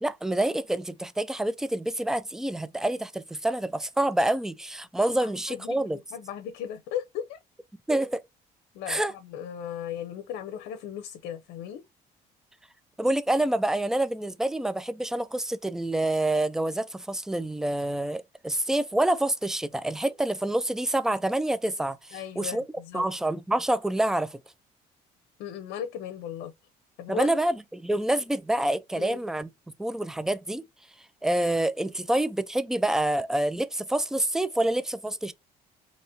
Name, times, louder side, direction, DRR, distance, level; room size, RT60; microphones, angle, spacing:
voice 1, 0.0-6.0 7.9-8.2 8.9-9.1 13.0-22.6 22.9-24.4 27.1-29.5 29.8-30.6 31.2-35.3, right 1 dB, 5° right, 0.3 m, -27 dB
voice 2, 5.2-7.4 8.7-11.8 22.1-23.1 25.4-26.5 27.0-27.3 28.9-29.2, left 9 dB, 85° left, 0.6 m, -36 dB
4.2 x 2.9 x 2.6 m
cardioid pair, 110°, 17 cm